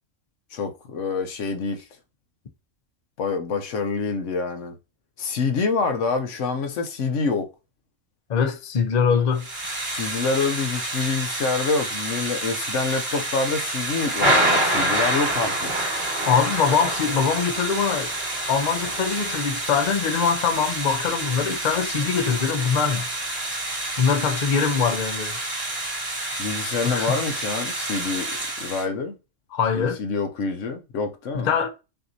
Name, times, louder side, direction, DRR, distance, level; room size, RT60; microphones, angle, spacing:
voice 1, 0.5-1.9 3.2-4.8 5.2-7.5 9.9-15.7 26.4-29.2 29.7-31.5, left 4 dB, 80° left, 1.0 m, -26 dB
voice 2, 8.3-9.5 16.3-18.1 18.5-23.1 24.0-25.4 26.8-27.2 29.5-30.0 31.3-31.7, left 6 dB, 45° left, 0.7 m, -23 dB
Thunder / Rain, 9.4-28.8, right 1 dB, 50° right, 2.3 m, -27 dB
5.7 x 2.6 x 2.7 m
omnidirectional pair, 1.3 m